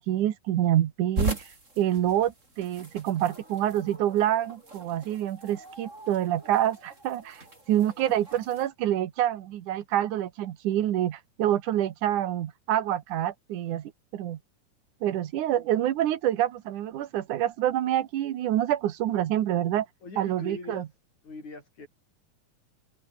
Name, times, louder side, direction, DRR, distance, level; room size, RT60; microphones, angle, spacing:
voice 1, 0.0-1.4 1.8-14.4 15.0-19.9 20.2-20.9, right 12 dB, 70° right, 2.7 m, -27 dB
sound 1, 1.2-8.7, right 2 dB, 20° right, 6.2 m, -38 dB
voice 2, 20.0-20.9 21.2-21.9, left 3 dB, 60° left, 9.2 m, -41 dB
open air
omnidirectional pair, 3.8 m